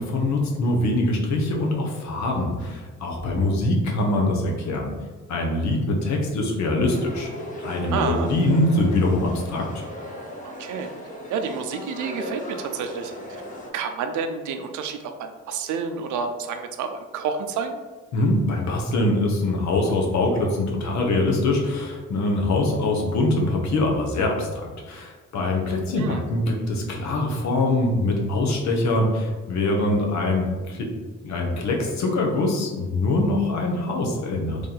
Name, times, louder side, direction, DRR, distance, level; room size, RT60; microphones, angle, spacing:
voice 1, 0.0-4.9 5.3-7.3 7.6-9.8 18.1-24.6 24.9-30.9 31.2-34.6, left 2 dB, 65° left, 0 dB, 0.9 m, -23 dB
sound 1, 6.9-13.7, left 1 dB, 25° left, 0.9 m, -37 dB
voice 2, 7.9-8.3 10.4-10.9 11.3-13.1 13.7-17.8 26.0-26.2, right 6 dB, 75° right, 6 dB, 0.5 m, -29 dB
3.2 x 2.7 x 3.9 m, 1.3 s
cardioid pair, 90°, 30 cm